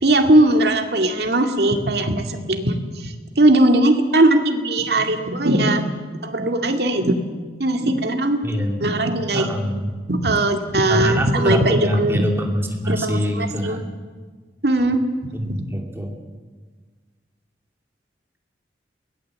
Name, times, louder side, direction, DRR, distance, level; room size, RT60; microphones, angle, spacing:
voice 1, 0.0-5.8 6.2-7.2 7.6-8.4 8.8-9.5 10.1-12.2 12.9-13.8 14.6-15.7, right 1 dB, 65° right, 5 dB, 2.2 m, -19 dB
voice 2, 8.4-8.8 9.3-9.9 10.9-13.8 15.3-16.1, equal, 15° right, 2 dB, 2.6 m, -24 dB
23.5 x 18.0 x 7.7 m, 1.5 s
head